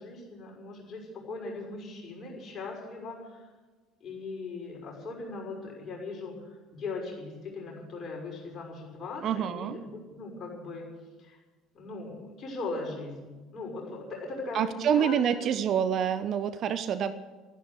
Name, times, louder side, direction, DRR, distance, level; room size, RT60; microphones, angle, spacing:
voice 1, 0.0-3.4 4.0-10.9 11.2-11.4 11.7-15.5, left 3 dB, 35° left, -2 dB, 6.1 m, -39 dB
voice 2, 9.2-9.8 14.5-17.1, right 8 dB, 45° right, 12 dB, 0.7 m, -27 dB
13.0 x 10.5 x 9.7 m, 1.3 s
figure-of-eight pair, 60°, 0 cm